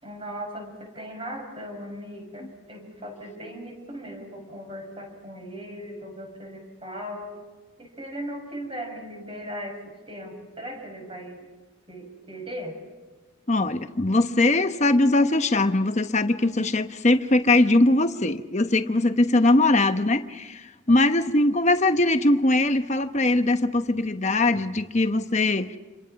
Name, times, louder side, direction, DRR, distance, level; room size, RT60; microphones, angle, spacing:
voice 1, 0.0-7.3 7.8-11.5 11.9-12.7, equal, 25° right, 6.0 m, -38 dB
voice 2, 13.5-20.6 20.9-25.7, left 2 dB, 35° left, 1.1 m, -21 dB
28.0 x 23.0 x 5.9 m
head